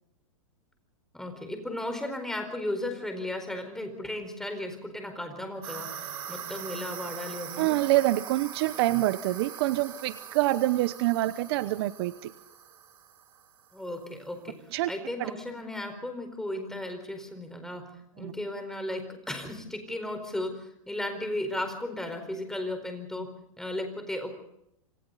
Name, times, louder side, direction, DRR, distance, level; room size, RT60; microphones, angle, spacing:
voice 1, 1.1-7.8 13.7-23.3 23.6-24.3, left 1 dB, 5° left, 6 dB, 4.5 m, -35 dB
sound 1, 5.6-13.8, right 8 dB, 85° right, 5.1 m, -42 dB
voice 2, 7.6-12.3 14.7-14.9 15.2-15.3 18.2-18.3, right 17 dB, 45° right, 14 dB, 0.9 m, -26 dB
27.0 x 26.5 x 4.1 m, 0.78 s
hypercardioid pair, 145°, 18 cm